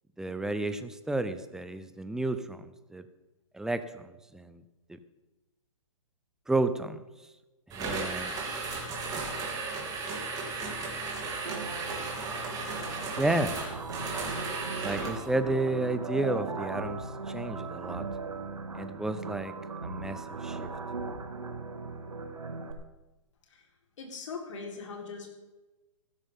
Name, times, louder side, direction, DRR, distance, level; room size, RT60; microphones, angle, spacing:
voice 1, 0.2-3.0 3.5-4.6 4.9-5.0 6.5-7.0 7.7-8.3 13.1-13.6 14.8-18.1 18.7-19.5 19.8-20.7, right 2 dB, 5° right, 11 dB, 0.6 m, -31 dB
sound 1, 7.7-15.3, right 3 dB, 20° right, 3.1 m, -35 dB
sound 2, 11.5-22.7, right 4 dB, 85° right, 1.7 m, -38 dB
voice 2, 24.0-25.3, left 4 dB, 65° left, 1 dB, 4.1 m, -40 dB
15.5 x 13.0 x 3.7 m, 1.1 s
hypercardioid pair, 125°, 17 cm